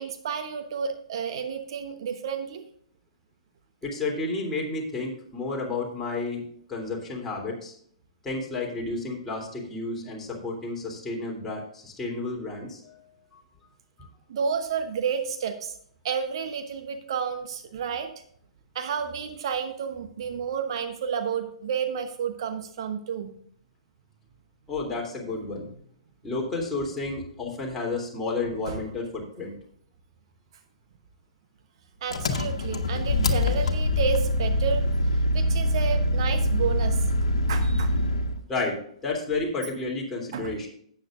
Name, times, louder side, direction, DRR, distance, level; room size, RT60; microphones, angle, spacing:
voice 1, 0.0-2.6 14.3-15.8 16.0-18.1 18.7-23.3 28.6-28.9 32.0-34.9 35.1-37.1 37.5-37.9 40.3-40.6, right 6 dB, 50° right, 7 dB, 1.0 m, -31 dB
voice 2, 3.8-6.4 6.7-7.7 8.2-13.0 13.3-13.4 14.0-14.1 24.7-25.7 26.2-29.5 38.5-40.7, left 3 dB, 10° left, -2 dB, 3.3 m, -31 dB
Engine, 32.1-38.4, left 1 dB, 65° left, 1.4 m, -24 dB
12.5 x 9.1 x 2.6 m, 0.63 s
figure-of-eight pair, 115°, 3 cm